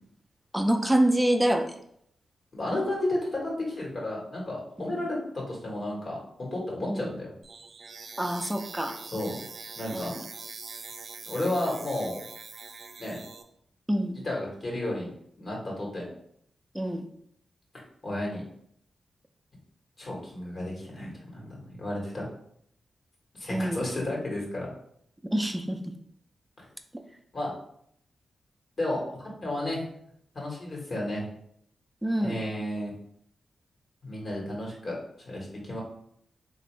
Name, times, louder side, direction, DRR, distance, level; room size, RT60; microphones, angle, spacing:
voice 1, 0.5-1.7 4.8-5.0 6.9-7.1 8.2-9.0 9.9-10.2 13.9-14.2 16.7-17.0 23.5-23.8 25.3-25.9 32.0-32.4, right 1 dB, 10° right, 6 dB, 0.5 m, -26 dB
voice 2, 2.5-3.4 3.7-7.3 9.0-9.4 9.7-10.1 11.3-12.2 13.0-13.2 14.2-15.1 15.4-16.1 18.0-18.4 20.0-22.3 23.4-24.7 27.3-27.5 28.8-29.0 29.4-29.8 30.3-31.3 32.2-32.9 34.0-35.8, left 1 dB, 55° left, -3 dB, 1.4 m, -32 dB
sound 1, 7.4-13.4, right 4 dB, 65° right, 0.4 m, -43 dB
3.5 x 2.5 x 3.2 m, 0.69 s
cardioid pair, 50°, 0 cm